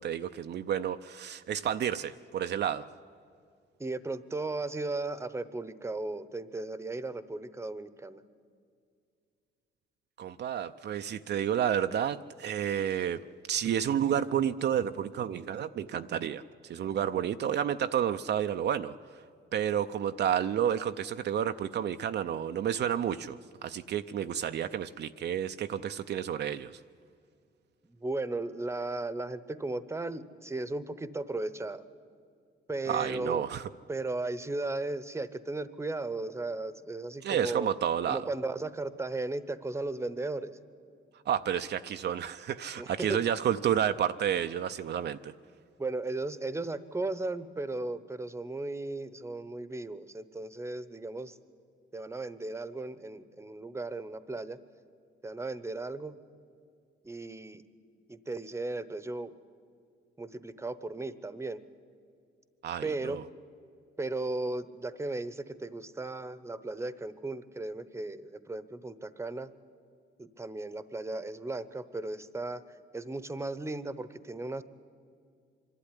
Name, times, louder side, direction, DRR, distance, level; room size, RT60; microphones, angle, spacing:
voice 1, 0.0-2.9 10.2-13.2 13.5-16.4 16.7-18.9 19.5-26.8 32.9-33.7 37.2-38.2 41.3-45.3 62.6-63.2, right 9 dB, 60° right, 9 dB, 0.5 m, -30 dB
voice 2, 3.8-8.2 27.8-31.9 32.7-33.5 33.9-37.7 38.1-40.6 42.8-43.2 45.8-51.4 51.9-54.6 55.2-56.1 57.0-57.6 58.1-59.3 60.2-61.6 62.8-63.2 64.0-69.5 70.2-74.6, right 2 dB, 15° right, 15 dB, 0.9 m, -36 dB
24.5 x 12.0 x 9.9 m, 2.3 s
cardioid pair, 90°, 20 cm